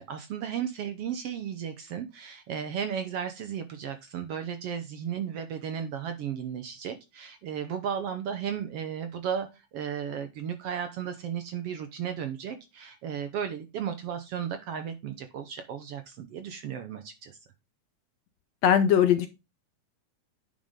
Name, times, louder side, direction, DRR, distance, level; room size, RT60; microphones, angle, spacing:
voice 1, 0.0-17.4, right 8 dB, 65° right, 8 dB, 1.6 m, -34 dB
voice 2, 18.6-19.3, left 9 dB, 70° left, 10 dB, 1.7 m, -20 dB
10.0 x 5.6 x 3.7 m, 0.25 s
omnidirectional pair, 3.6 m